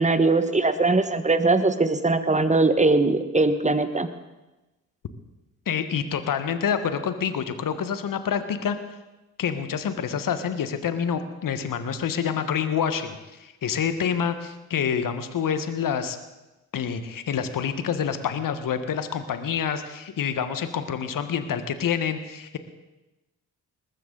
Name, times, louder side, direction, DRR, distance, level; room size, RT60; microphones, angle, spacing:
voice 1, 0.0-4.1, right 3 dB, 15° right, 10 dB, 1.5 m, -21 dB
voice 2, 5.6-8.8 9.4-16.2 16.7-22.6, left 7 dB, 50° left, 10 dB, 1.4 m, -27 dB
19.5 x 15.0 x 4.0 m, 1.0 s
hypercardioid pair, 45°, 42 cm